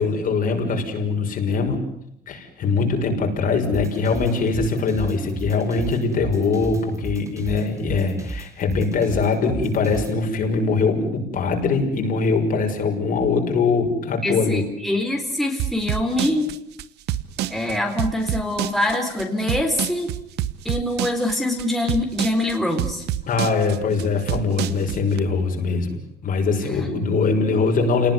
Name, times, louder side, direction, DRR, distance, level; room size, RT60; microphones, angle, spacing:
voice 1, 0.0-1.8 2.3-14.6 23.3-28.1, left 4 dB, 55° left, 3 dB, 6.3 m, -22 dB
sound 1, 3.6-10.2, right 2 dB, 20° right, 3.3 m, -33 dB
voice 2, 14.2-16.6 17.5-20.1 20.6-23.1, left 1 dB, ahead, 2 dB, 3.9 m, -24 dB
sound 2, 15.6-25.2, right 13 dB, 80° right, 1.3 m, -27 dB
28.0 x 19.5 x 9.7 m, 0.78 s
cardioid pair, 110°, 17 cm